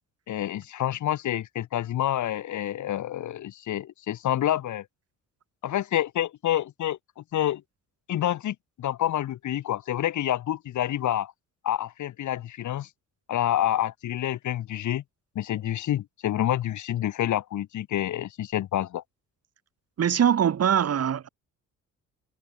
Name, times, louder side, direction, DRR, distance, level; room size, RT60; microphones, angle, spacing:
voice 1, 0.3-4.8 5.6-7.6 8.1-11.3 11.6-12.9 13.3-15.0 15.3-19.0, left 12 dB, 75° left, 3.1 m, -28 dB
voice 2, 20.0-21.3, right 8 dB, 55° right, 2.7 m, -22 dB
cardioid pair, 90°, 30 cm